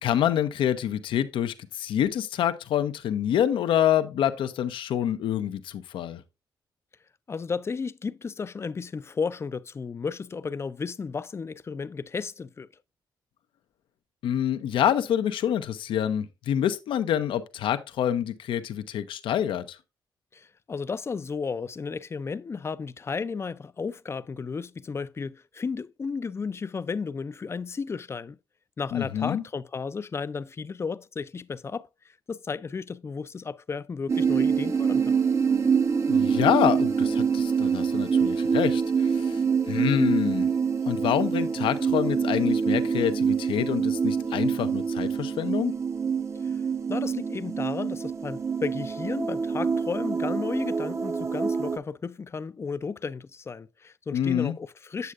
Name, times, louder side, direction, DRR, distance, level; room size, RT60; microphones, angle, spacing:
voice 1, 0.0-6.2 14.2-19.8 28.9-29.4 36.1-40.5 40.9-45.7 54.1-54.5, left 10 dB, 80° left, 0.6 m, -27 dB
voice 2, 7.3-12.7 20.3-28.4 28.8-35.1 46.4-46.6 46.9-55.1, left 5 dB, 30° left, 0.4 m, -33 dB
sound 1, 34.1-51.8, right 6 dB, 35° right, 0.7 m, -25 dB
8.0 x 7.4 x 2.3 m
cardioid pair, 90°, 9 cm